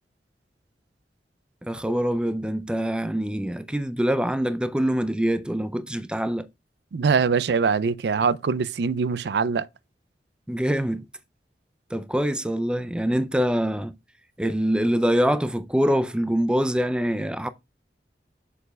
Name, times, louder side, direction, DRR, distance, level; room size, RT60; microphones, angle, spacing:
voice 1, 1.6-6.5 10.5-11.0 11.9-14.0 14.4-17.5, equal, 5° right, 0.4 m, -24 dB
voice 2, 6.9-9.7, right 5 dB, 75° right, 0.4 m, -23 dB
6.9 x 6.4 x 2.3 m
head